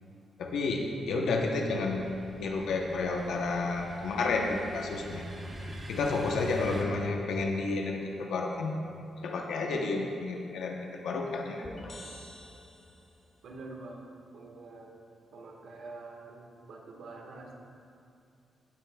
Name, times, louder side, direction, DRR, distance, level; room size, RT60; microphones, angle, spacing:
voice 1, 0.4-5.3 5.9-8.8 9.2-11.7, left 3 dB, 85° left, 1 dB, 0.9 m, -31 dB
sound 1, 1.2-6.8, equal, 30° right, 1.1 m, -44 dB
sound 2, 11.6-13.3, left 1 dB, 25° left, 1.2 m, -46 dB
voice 2, 13.4-14.9 15.3-17.6, right 3 dB, 65° right, 0 dB, 1.5 m, -46 dB
15.0 x 9.1 x 2.3 m, 2.5 s
wide cardioid pair, 145°, 0 cm